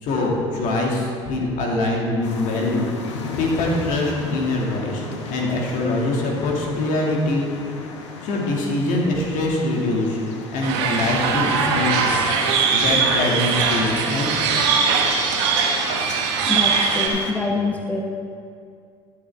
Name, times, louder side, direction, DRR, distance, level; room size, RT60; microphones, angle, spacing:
voice 1, 0.0-2.9 3.4-7.4 8.2-10.2 10.5-12.1 12.7-14.6, left 2 dB, 60° left, -1 dB, 2.3 m, -23 dB
sound 1, 2.2-17.3, left 4 dB, 85° left, 1.0 m, -36 dB
sound 2, 10.6-17.1, right 5 dB, 75° right, 1.3 m, -21 dB
voice 2, 16.5-18.0, left 3 dB, 10° left, 2 dB, 1.0 m, -25 dB
13.5 x 7.8 x 3.6 m, 2.3 s
hypercardioid pair, 65°, 15 cm